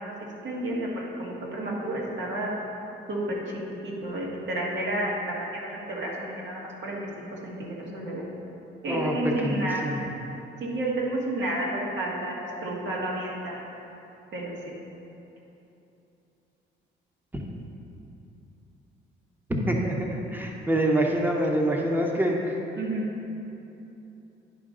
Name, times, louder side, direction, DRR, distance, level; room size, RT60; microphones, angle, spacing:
voice 1, 0.4-2.5 3.1-3.4 3.8-8.2 8.8-10.0 10.6-13.6 14.3-14.7 22.8-23.0, right 1 dB, 65° right, -3 dB, 1.8 m, -31 dB
voice 2, 8.9-10.0 17.3-17.4 19.5-22.6, right 1 dB, 10° right, 0 dB, 1.0 m, -26 dB
10.5 x 5.1 x 3.8 m, 2.9 s
cardioid pair, 90°, 20 cm